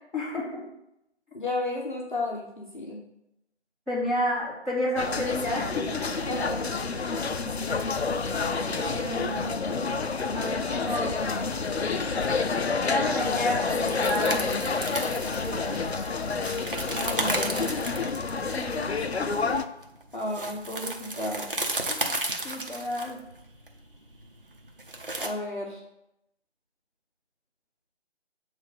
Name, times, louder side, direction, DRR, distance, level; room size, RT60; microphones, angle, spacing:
voice 1, 0.1-0.6 3.8-6.0 8.6-9.5 10.3-11.5 12.8-14.7 15.4-15.8 18.3-19.5 21.9-23.2, left 1 dB, 5° right, -22 dB, 1.7 m, -31 dB
voice 2, 1.3-3.0 6.3-6.7 16.9-17.7 20.1-21.5 25.2-25.8, left 2 dB, 45° left, -2 dB, 0.9 m, -32 dB
sound 1, 5.0-19.6, left 4 dB, 65° left, 0.5 m, -29 dB
sound 2, 13.9-25.3, right 2 dB, 50° right, 0.8 m, -34 dB
7.5 x 3.2 x 4.1 m, 0.84 s
figure-of-eight pair, 175°, 34 cm